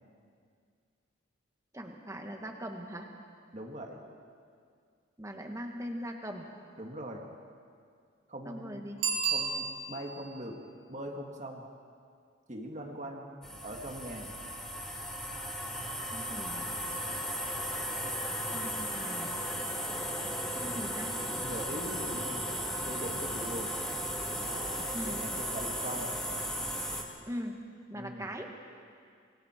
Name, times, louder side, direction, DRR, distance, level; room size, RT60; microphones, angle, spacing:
voice 1, 1.7-3.1 5.2-6.5 8.5-9.0 16.1-16.7 18.5-19.4 20.5-21.2 24.9-25.2 27.2-27.5 27.9-28.5, equal, 15° right, 3 dB, 1.6 m, -40 dB
voice 2, 3.5-4.0 6.8-7.2 8.3-8.9 9.3-10.6 10.9-11.6 12.5-14.3 21.4-22.5 22.9-23.7 24.3-26.1 27.9-28.3, right 1 dB, 35° right, 1 dB, 1.8 m, -41 dB
Bicycle bell, 9.0-10.2 15.6-15.7, right 6 dB, 65° right, 3.4 m, -31 dB
sound 1, 13.4-27.0, equal, 5° left, 1.8 m, -36 dB
27.0 x 22.0 x 4.5 m, 2.2 s
head